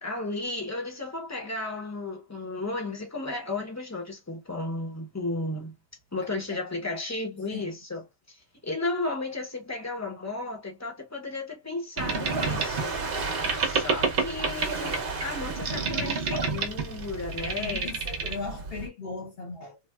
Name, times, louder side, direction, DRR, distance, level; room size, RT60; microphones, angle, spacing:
voice 1, 0.0-5.7 6.1-13.0 13.5-17.9, left 2 dB, 25° left, 0.4 m, -34 dB
Boat Water vehicle, 12.0-18.9, right 4 dB, 55° right, 0.6 m, -29 dB
voice 2, 17.4-19.9, left 4 dB, 45° left, 0.9 m, -38 dB
3.3 x 2.5 x 2.3 m
omnidirectional pair, 1.8 m